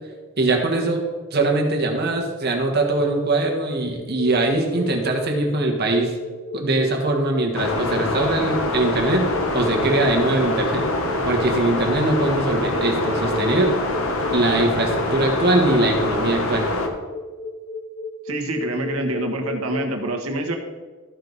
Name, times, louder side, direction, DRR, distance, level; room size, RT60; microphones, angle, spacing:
voice 1, 0.4-1.0 1.3-6.2 6.5-10.9 11.2-13.7 14.3-16.7, right 2 dB, 50° right, 2 dB, 1.5 m, -22 dB
sound 1, 4.0-19.8, left 3 dB, 50° left, 3.2 m, -33 dB
sound 2, 7.5-16.9, left 2 dB, 80° left, 1.1 m, -25 dB
voice 2, 18.3-20.6, right 1 dB, 85° right, 2 dB, 1.4 m, -26 dB
14.0 x 5.4 x 4.0 m, 1.4 s
head